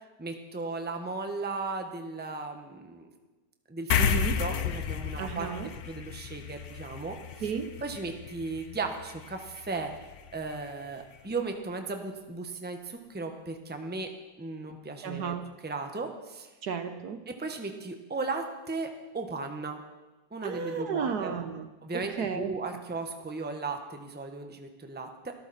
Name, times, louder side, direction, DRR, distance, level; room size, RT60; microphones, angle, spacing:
voice 1, 0.2-3.1 3.7-5.5 5.8-7.5 7.8-9.9 10.3-14.1 14.4-15.3 15.6-16.5 17.3-19.8 20.3-21.3 21.8-25.3, right 3 dB, 5° right, 5 dB, 1.1 m, -36 dB
sound 1, 3.9-10.7, left 8 dB, 60° left, 1.2 m, -33 dB
voice 2, 4.0-4.4 5.2-5.7 7.4-7.8 15.0-15.5 16.6-17.2 20.4-21.7 21.9-22.5, right 6 dB, 60° right, 8 dB, 1.4 m, -33 dB
24.5 x 13.5 x 4.3 m, 1.1 s
omnidirectional pair, 2.0 m